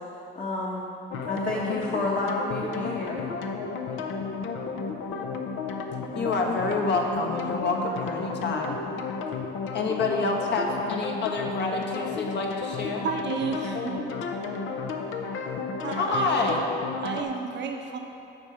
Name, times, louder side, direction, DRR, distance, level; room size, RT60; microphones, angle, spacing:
voice 1, 0.3-0.9 1.2-3.2, left 2 dB, 40° left, -4 dB, 1.1 m, -30 dB
sound 1, 1.1-17.2, left 4 dB, 85° left, 0.7 m, -33 dB
voice 2, 6.1-8.8 9.7-13.1 16.0-16.6, left 3 dB, 60° left, 1 dB, 1.2 m, -27 dB
voice 3, 13.0-14.0 15.8-16.6 17.0-18.0, right 5 dB, 65° right, 3 dB, 0.9 m, -32 dB
7.8 x 4.7 x 6.9 m, 2.8 s
cardioid pair, 90°, 20 cm